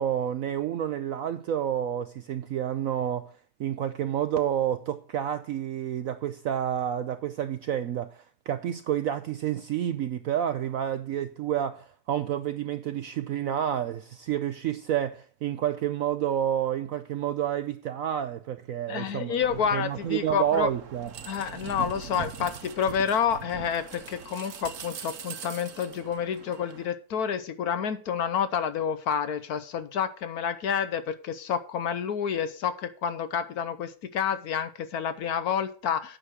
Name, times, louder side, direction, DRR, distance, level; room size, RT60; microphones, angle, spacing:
voice 1, 0.0-3.3 3.6-19.3 19.7-21.1, right 10 dB, 70° right, 0.8 m, -29 dB
voice 2, 18.9-20.7 21.3-36.2, left 7 dB, 65° left, 1.1 m, -29 dB
sound 1, 19.4-26.9, right 7 dB, 55° right, 1.1 m, -42 dB
9.0 x 6.3 x 6.3 m
omnidirectional pair, 1.9 m